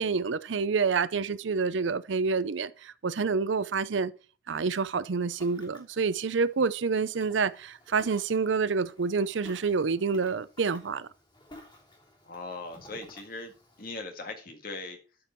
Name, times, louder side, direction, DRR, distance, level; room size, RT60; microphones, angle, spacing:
voice 1, 0.0-4.1 4.5-11.1, right 5 dB, 75° right, 0.5 m, -28 dB
Ocean, 5.0-14.0, left 1 dB, 25° left, 3.1 m, -54 dB
voice 2, 12.2-13.5 13.8-15.0, left 3 dB, 50° left, 2.0 m, -39 dB
12.0 x 5.3 x 4.5 m
head